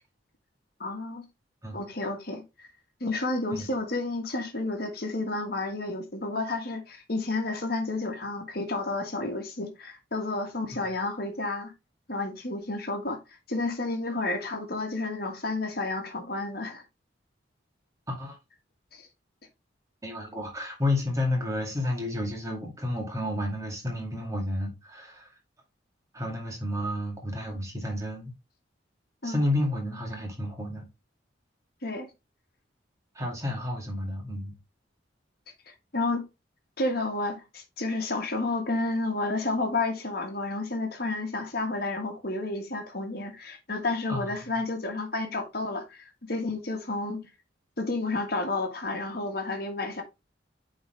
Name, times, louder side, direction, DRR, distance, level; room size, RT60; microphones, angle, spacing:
voice 1, 0.8-1.3 1.7-2.7 3.0-11.7 12.1-13.2 13.5-16.8 18.9-19.1 29.2-29.4 31.8-32.1 35.7-36.3 36.8-47.3 47.8-50.0, left 2 dB, 50° left, 1.6 m, -31 dB
voice 2, 20.0-25.3 26.1-28.3 29.2-30.8 33.1-34.5 44.1-44.5, left 1 dB, 15° right, 2.3 m, -31 dB
9.0 x 4.0 x 3.3 m
head